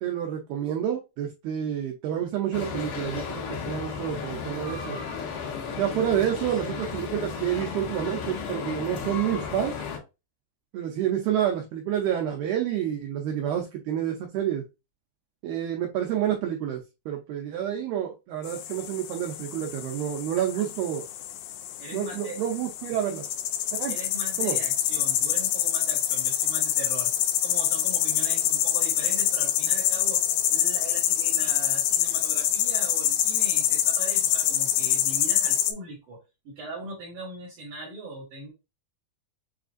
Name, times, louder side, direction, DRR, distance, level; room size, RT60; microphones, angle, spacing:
voice 1, 0.0-5.0 5.8-9.7 10.7-14.6 15.4-21.0 21.9-23.2 23.7-24.0 24.4-24.6, right 10 dB, 90° right, 2 dB, 2.1 m, -29 dB
sound 1, 2.5-10.0, left 6 dB, 65° left, 3.0 m, -34 dB
sound 2, 18.5-35.7, left 11 dB, 85° left, 2.8 m, -26 dB
voice 2, 21.8-22.4 23.9-27.1 27.4-36.2 36.4-38.5, right 2 dB, 70° right, -2 dB, 2.1 m, -40 dB
6.9 x 2.5 x 2.4 m, 0.26 s
omnidirectional pair, 5.1 m